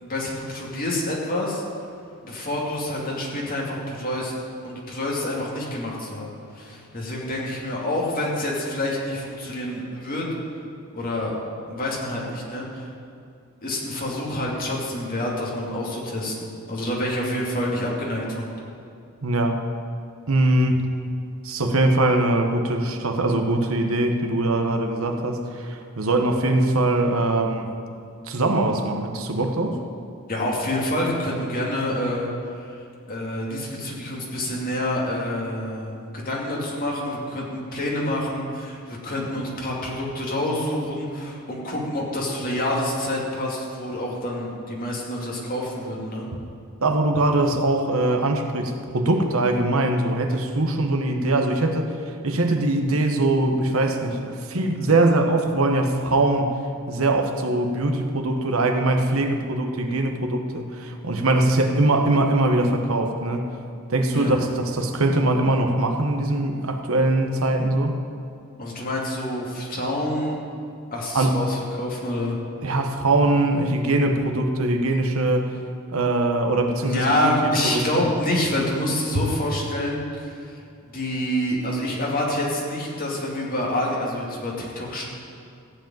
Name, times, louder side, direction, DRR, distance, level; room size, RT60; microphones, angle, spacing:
voice 1, 0.0-1.6 2.2-4.3 4.6-6.3 6.5-10.3 10.9-11.4 11.7-12.9 13.6-18.5 30.3-32.3 32.6-32.8 33.1-46.3 64.1-64.4 68.6-70.4 70.9-72.4 76.8-80.6 80.9-85.0, left 1 dB, 40° left, -3 dB, 2.5 m, -27 dB
voice 2, 19.2-19.6 20.3-20.9 21.4-27.7 28.3-29.8 46.8-52.0 52.2-56.6 56.9-63.5 63.9-67.9 71.1-71.4 72.6-75.6 75.9-78.1 79.1-79.2, right 2 dB, 75° right, 4 dB, 1.1 m, -22 dB
15.0 x 5.0 x 9.1 m, 2.4 s
head